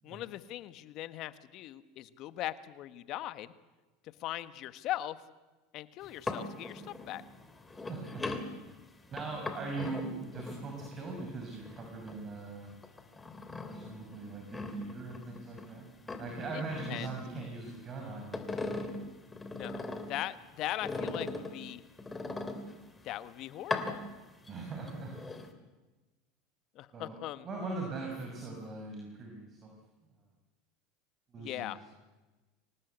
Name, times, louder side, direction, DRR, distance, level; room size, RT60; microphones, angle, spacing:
voice 1, 0.0-3.5 4.2-5.2 5.7-7.2 16.5-16.6 16.9-17.1 19.5-21.8 23.0-24.0 26.7-27.5 31.4-31.8, left 14 dB, 55° left, 13 dB, 1.4 m, -40 dB
sound 1, 6.0-12.4 12.8-15.7 16.0-17.8 18.1-20.3 20.8-23.0 23.6-24.5 24.9-25.5, left 2 dB, 15° left, 3.1 m, -40 dB
voice 2, 7.7-8.2 9.1-12.7 13.7-18.6 24.4-25.3 26.9-27.2 27.4-29.7 31.3-31.8, right 3 dB, 35° right, 1 dB, 6.1 m, -41 dB
25.5 x 18.5 x 8.2 m, 1.2 s
supercardioid pair, 105°, 0 cm